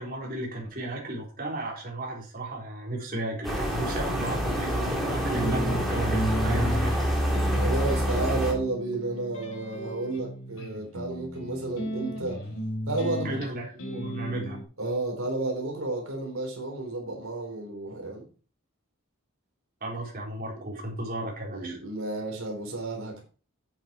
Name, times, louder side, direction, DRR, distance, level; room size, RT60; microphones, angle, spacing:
voice 1, 0.0-6.9 13.2-14.6 19.8-21.8, right 2 dB, 40° right, 3.9 m, -34 dB
sound 1, 3.4-8.5, equal, ahead, 3.4 m, -27 dB
sound 2, 5.4-14.6, equal, 75° left, 3.4 m, -34 dB
voice 2, 7.5-12.5 12.9-13.4 14.8-18.2 21.5-23.2, right 2 dB, 80° right, 3.8 m, -32 dB
9.2 x 8.5 x 4.3 m
head